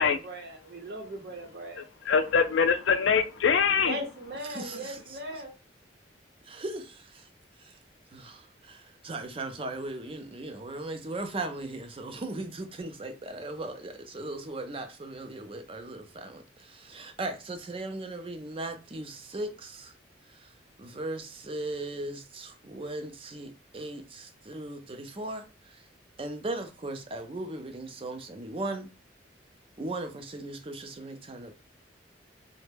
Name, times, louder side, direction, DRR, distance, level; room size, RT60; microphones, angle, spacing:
voice 1, 0.0-1.9 3.8-5.5, right 1 dB, 60° right, 0.8 m, -39 dB
voice 2, 2.1-4.0, left 6 dB, 85° left, 0.4 m, -23 dB
voice 3, 4.5-5.2 6.4-7.3 7.6-7.8 8.1-19.9 20.2-25.9 26.2-28.9 29.8-31.5, right 2 dB, 30° right, 0.4 m, -38 dB
3.2 x 2.1 x 3.3 m
head